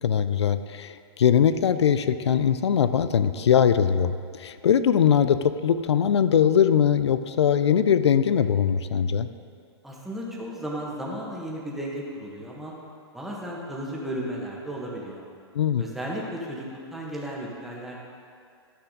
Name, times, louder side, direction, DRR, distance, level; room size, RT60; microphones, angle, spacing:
voice 1, 0.0-9.3 15.5-15.8, left 8 dB, 80° left, 12 dB, 0.4 m, -21 dB
voice 2, 9.8-12.7 13.1-15.2 15.8-18.0, equal, ahead, -4 dB, 1.5 m, -34 dB
12.0 x 5.7 x 3.9 m, 2.3 s
hypercardioid pair, 120°, 14 cm